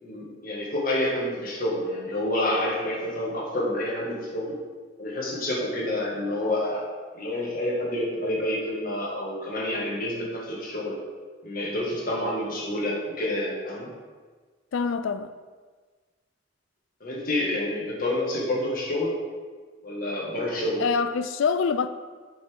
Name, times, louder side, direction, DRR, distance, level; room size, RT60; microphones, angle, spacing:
voice 1, 0.0-4.5 5.0-6.9 7.1-11.0 11.4-13.9 17.0-19.1 19.8-20.8, left 1 dB, 45° left, 1.7 m, -28 dB
voice 2, 14.7-15.3 20.8-21.9, left 5 dB, 85° left, 0.4 m, -25 dB
7.8 x 5.5 x 3.6 m
head